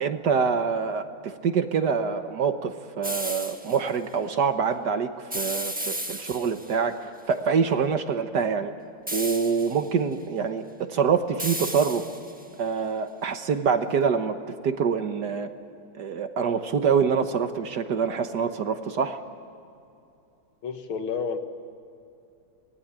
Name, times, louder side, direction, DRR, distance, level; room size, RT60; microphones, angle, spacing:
voice 1, 0.0-8.7 9.1-12.0 12.6-14.4 14.6-15.5 16.0-19.2, right 6 dB, 55° right, 8 dB, 1.5 m, -25 dB
sound 1, 3.0-3.8 5.3-6.7 9.1-9.9 11.4-12.4, right 1 dB, 5° right, 1.1 m, -33 dB
voice 2, 20.6-21.4, left 6 dB, 75° left, 7 dB, 2.3 m, -30 dB
25.0 x 19.0 x 8.8 m, 2.6 s
omnidirectional pair, 2.3 m